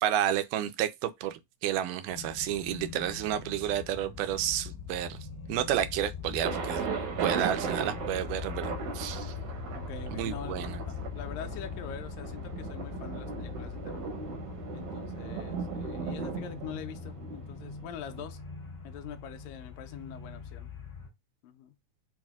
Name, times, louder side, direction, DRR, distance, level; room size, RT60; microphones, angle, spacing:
voice 1, 0.0-5.2 5.5-6.9 7.2-9.3 10.1-10.8, right 11 dB, 85° right, 2.2 m, -31 dB
sound 1, 2.1-21.1, left 5 dB, 45° left, 1.7 m, -42 dB
Thunder, 6.4-18.2, right 6 dB, 65° right, 1.6 m, -37 dB
voice 2, 9.7-14.1 14.7-18.4 18.8-20.7 21.4-21.7, left 9 dB, 80° left, 1.7 m, -44 dB
5.6 x 2.6 x 2.3 m
omnidirectional pair, 3.7 m